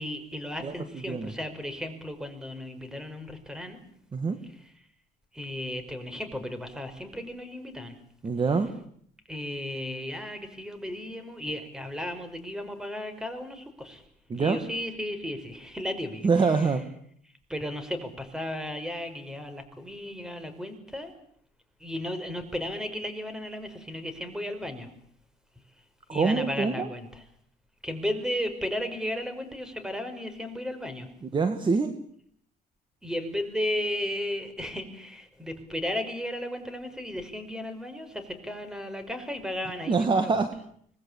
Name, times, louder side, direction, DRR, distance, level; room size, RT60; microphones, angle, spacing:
voice 1, 0.0-3.8 5.3-8.0 9.3-14.0 14.3-16.7 17.5-21.1 21.8-24.9 26.1-27.2 27.8-31.1 33.0-40.3, left 1 dB, 5° right, 10 dB, 5.3 m, -34 dB
voice 2, 8.2-8.7 14.3-14.6 16.2-16.8 26.1-26.9 31.2-31.9 39.9-40.5, right 4 dB, 30° right, 8 dB, 2.1 m, -25 dB
25.5 x 20.0 x 8.7 m, 0.64 s
cardioid pair, 110°, 17 cm